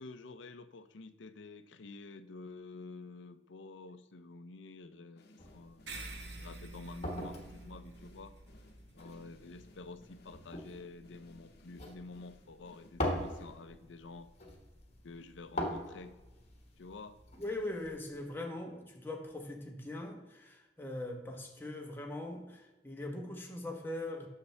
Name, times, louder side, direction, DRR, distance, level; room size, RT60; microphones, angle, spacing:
voice 1, 0.0-8.4 8.9-14.3 15.0-16.1 16.8-17.2, left 3 dB, 80° left, 11 dB, 0.6 m, -49 dB
sound 1, 5.2-14.0, left 1 dB, 60° left, 1.0 m, -62 dB
sound 2, 5.4-18.3, left 1 dB, 35° left, 1.4 m, -43 dB
sound 3, 5.9-10.7, right 2 dB, 65° right, 1.3 m, -49 dB
voice 2, 17.4-24.3, left 1 dB, 10° left, 1 dB, 1.1 m, -41 dB
9.6 x 6.7 x 3.3 m, 1.1 s
head